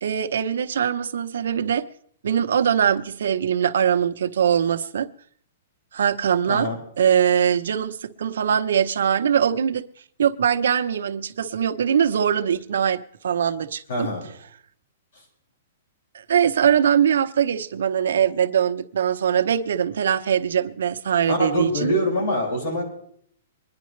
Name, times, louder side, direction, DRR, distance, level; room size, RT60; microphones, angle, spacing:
voice 1, 0.0-1.8 2.2-5.1 5.9-6.7 7.0-9.8 10.2-14.1 16.1-21.9, right 8 dB, 80° right, 1.0 m, -22 dB
voice 2, 13.9-14.2 21.3-22.8, left 1 dB, 70° left, 6.7 m, -24 dB
24.5 x 10.5 x 3.3 m
hypercardioid pair, 175°, 0 cm